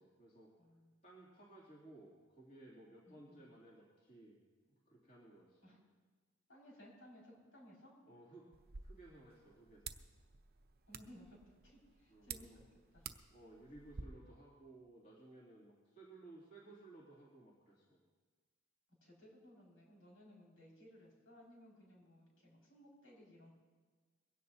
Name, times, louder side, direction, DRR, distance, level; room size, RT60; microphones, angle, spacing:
voice 1, 0.0-0.5 1.0-4.4 4.7-5.7 8.0-8.5 8.8-9.9 12.1-12.6 13.3-18.0, right 2 dB, 35° left, -5 dB, 2.9 m, -58 dB
voice 2, 0.6-0.9 3.1-3.5 5.6-5.8 6.5-7.9 10.9-11.4 11.6-12.6 12.9-13.1 19.0-23.5, equal, 75° left, -4 dB, 5.7 m, -60 dB
sound 1, 8.5-14.0, right 6 dB, 50° right, 0.7 m, -53 dB
22.0 x 16.5 x 2.8 m, 1.4 s
head